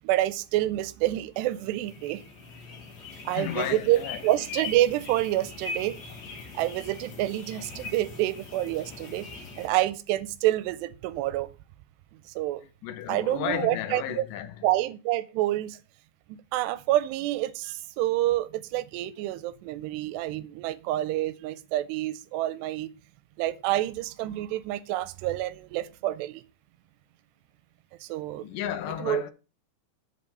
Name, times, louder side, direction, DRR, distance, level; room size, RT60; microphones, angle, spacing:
voice 1, 0.0-2.2 3.3-6.0 6.5-9.3 9.6-11.5 12.4-12.6 13.1-14.2 14.6-15.8 16.3-22.9 23.4-26.4 28.0-28.5 29.0-29.2, right 15 dB, 85° right, 2.7 m, -28 dB
sound 1, 1.3-9.7, left 4 dB, 50° left, 2.8 m, -41 dB
voice 2, 3.2-4.2 12.6-14.7 28.4-29.3, left 11 dB, 75° left, 2.0 m, -34 dB
7.7 x 5.4 x 5.4 m
omnidirectional pair, 4.8 m